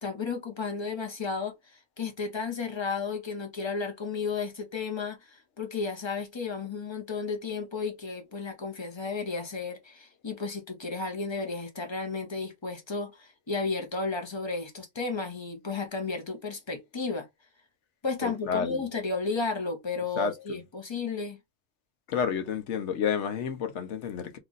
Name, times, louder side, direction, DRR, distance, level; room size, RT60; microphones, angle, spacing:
voice 1, 0.0-17.3 18.0-21.4, left 4 dB, 25° left, 0.8 m, -33 dB
voice 2, 18.2-18.8 20.2-20.6 22.1-24.4, left 7 dB, 75° left, 1.0 m, -30 dB
3.0 x 2.5 x 3.8 m
omnidirectional pair, 1.2 m